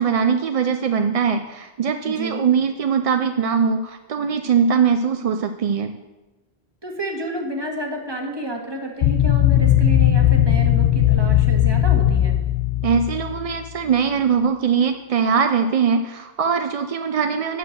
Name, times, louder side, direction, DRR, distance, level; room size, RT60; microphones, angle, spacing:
voice 1, 0.0-5.9 12.8-17.6, right 6 dB, 55° right, 7 dB, 0.4 m, -21 dB
voice 2, 2.0-2.5 6.8-12.3, right 1 dB, 25° right, 2 dB, 1.4 m, -30 dB
sound 1, 9.0-13.7, left 12 dB, 65° left, 0.8 m, -18 dB
9.0 x 6.5 x 6.4 m, 1.1 s
omnidirectional pair, 1.1 m